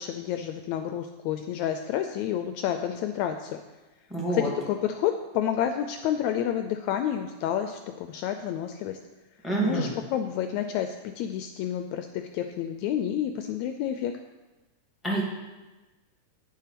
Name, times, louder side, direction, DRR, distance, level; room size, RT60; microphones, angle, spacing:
voice 1, 0.0-3.6 4.3-9.0 9.6-14.1, left 10 dB, 80° left, 7 dB, 1.7 m, -29 dB
voice 2, 4.1-4.5 9.4-9.9 15.0-15.2, right 2 dB, ahead, -3 dB, 2.0 m, -27 dB
9.1 x 7.2 x 5.9 m, 1.2 s
omnidirectional pair, 3.5 m